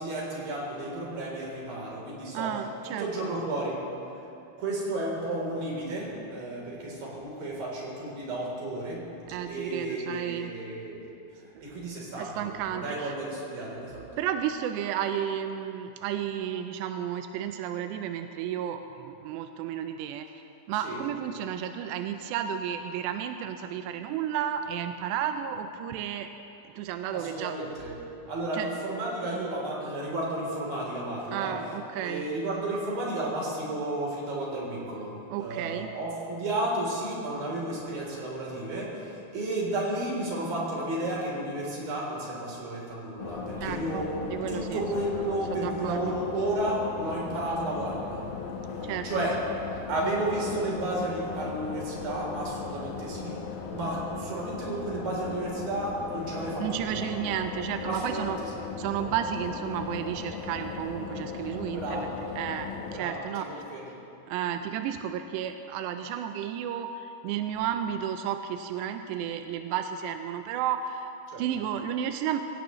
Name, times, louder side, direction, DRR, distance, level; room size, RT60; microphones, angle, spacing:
voice 1, 0.0-2.5 2.8-3.8 4.6-9.1 9.4-11.0 11.4-14.1 20.8-21.0 27.1-31.6 32.0-44.1 44.5-48.3 48.8-49.4 49.9-57.1 57.8-58.5 61.7-62.1 62.9-63.9 71.3-71.4, right 1 dB, 50° right, -4 dB, 5.0 m, -32 dB
voice 2, 2.3-3.3 9.3-10.5 12.2-13.1 14.2-20.3 20.7-26.3 26.8-27.6 28.5-28.7 31.3-32.3 35.3-35.9 43.6-44.9 45.5-46.2 48.8-49.3 56.6-58.4 58.8-63.5 64.3-71.1 71.4-72.4, right 9 dB, 85° right, 7 dB, 2.5 m, -32 dB
sound 1, 43.2-63.0, left 5 dB, 65° left, 2.5 m, -37 dB
25.5 x 17.0 x 3.1 m, 2.9 s
omnidirectional pair, 5.6 m